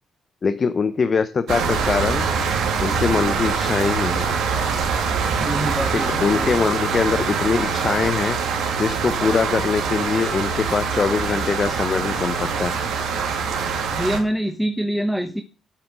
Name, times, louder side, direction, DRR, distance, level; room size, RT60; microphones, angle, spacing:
voice 1, 0.4-2.3 2.8-4.3 5.9-8.4 8.8-12.7, left 5 dB, 45° left, 11 dB, 0.8 m, -22 dB
sound 1, 1.5-14.2, right 5 dB, 75° right, 2.5 m, -24 dB
voice 2, 5.4-6.5 13.9-15.4, equal, ahead, 9 dB, 1.0 m, -25 dB
8.6 x 8.1 x 6.1 m, 0.37 s
supercardioid pair, 60°, 0 cm